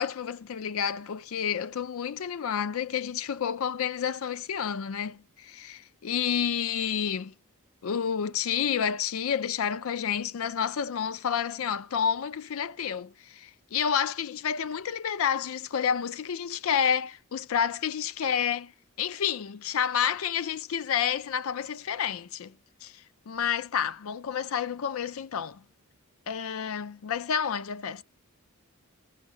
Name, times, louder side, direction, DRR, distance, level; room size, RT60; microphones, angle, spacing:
voice 1, 0.0-7.3 7.8-18.7 19.0-22.5 22.8-25.6 26.3-28.0, left 8 dB, 75° left, 0.4 m, -30 dB
16.0 x 6.3 x 3.8 m
head